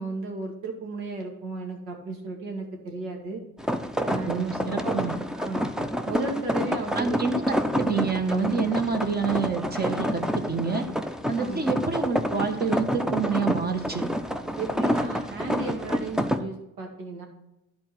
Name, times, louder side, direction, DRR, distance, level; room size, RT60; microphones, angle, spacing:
voice 1, 0.0-3.4 4.0-4.5 4.8-5.0 5.3-5.7 6.1-7.2 11.4-11.7 14.6-17.3, right 3 dB, 85° right, 1 dB, 2.1 m, -34 dB
sound 1, 3.6-16.4, equal, ahead, 0.6 m, -28 dB
voice 2, 4.2-5.1 7.0-10.8 11.3-14.1, right 5 dB, 25° right, 6 dB, 1.5 m, -27 dB
11.5 x 4.5 x 5.9 m, 0.91 s
supercardioid pair, 80°, 35 cm